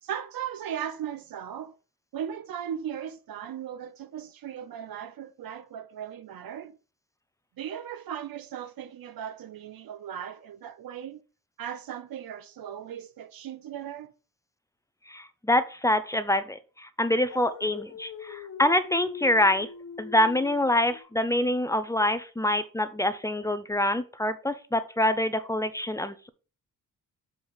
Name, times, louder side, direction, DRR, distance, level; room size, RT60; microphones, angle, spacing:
voice 1, 0.0-1.7 2.1-6.8 7.6-11.2 11.6-14.1, right 9 dB, 80° right, 0.9 m, -37 dB
voice 2, 15.1-19.7 20.0-26.3, left 1 dB, 10° left, 0.4 m, -26 dB
Dog, 17.3-21.0, left 6 dB, 50° left, 1.1 m, -42 dB
7.2 x 4.8 x 5.3 m
wide cardioid pair, 175°, 35 cm